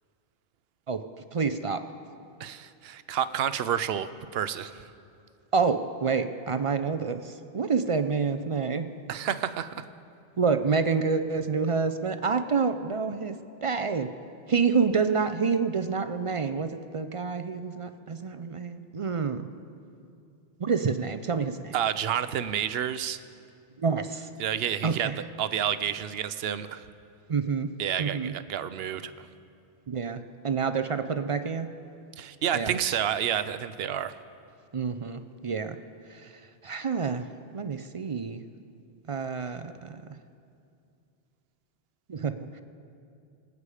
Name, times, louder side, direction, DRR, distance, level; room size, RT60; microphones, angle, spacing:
voice 1, 1.3-1.8 5.5-8.9 10.4-14.1 14.5-19.5 20.6-21.7 23.8-24.3 24.8-25.2 27.3-27.7 28.0-28.3 29.9-31.7 32.5-33.0 34.7-35.8 36.1-36.3 36.6-37.3 37.5-38.4 39.1-40.1 42.1-42.6, right 5 dB, 45° right, 10 dB, 0.4 m, -28 dB
voice 2, 2.4-4.7 9.1-9.9 21.7-23.2 24.4-25.1 25.4-26.8 27.8-29.1 32.2-34.1, right 9 dB, 70° right, 13 dB, 0.8 m, -29 dB
24.5 x 8.3 x 4.9 m, 2.5 s
omnidirectional pair, 1.1 m